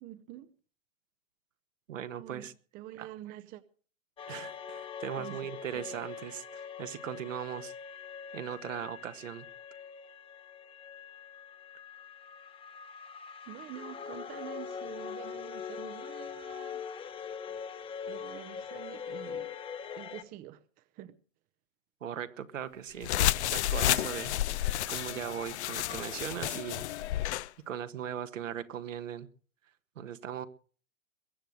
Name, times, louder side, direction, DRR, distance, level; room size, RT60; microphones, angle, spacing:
voice 1, 0.0-0.5 2.1-3.6 5.2-5.5 5.7-5.8 13.5-16.8 18.1-19.5 20.0-21.2, right 13 dB, 20° right, 0.6 m, -47 dB
voice 2, 1.9-2.5 3.0-3.1 4.3-7.7 8.3-9.5 22.0-26.8 27.7-29.3 29.9-30.5, right 9 dB, 75° right, 1.5 m, -39 dB
sound 1, 4.2-20.2, left 7 dB, 15° left, 1.0 m, -43 dB
sound 2, 23.0-27.5, left 13 dB, 60° left, 0.6 m, -31 dB
22.0 x 7.9 x 6.3 m
hypercardioid pair, 125°, 38 cm